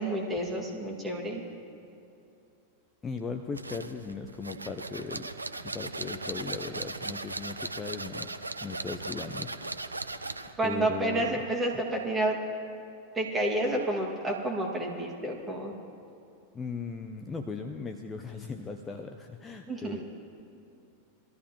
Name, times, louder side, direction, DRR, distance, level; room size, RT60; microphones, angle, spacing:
voice 1, 0.0-1.4 10.6-12.4 13.1-15.7 19.7-20.0, right 1 dB, 15° right, -1 dB, 2.1 m, -30 dB
voice 2, 3.0-5.3 5.6-8.3 8.6-9.5 10.6-11.4 16.5-20.0, left 4 dB, 20° left, 5 dB, 0.6 m, -38 dB
sound 1, 3.5-10.6, right 2 dB, 80° right, 0.5 m, -38 dB
21.5 x 13.5 x 3.0 m, 2.6 s
figure-of-eight pair, 90°, 0 cm